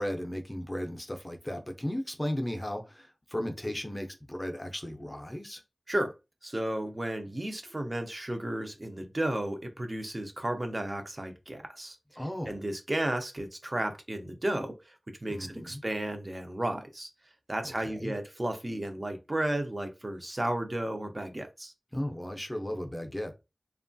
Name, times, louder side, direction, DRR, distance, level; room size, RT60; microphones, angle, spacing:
voice 1, 0.0-5.6 12.2-12.6 15.3-15.8 17.6-18.1 21.9-23.3, left 1 dB, 20° left, 0.5 m, -35 dB
voice 2, 6.4-12.0 12.4-17.1 17.5-21.7, right 1 dB, 35° right, 0.5 m, -33 dB
3.0 x 2.2 x 2.6 m
wide cardioid pair, 70°, 0 cm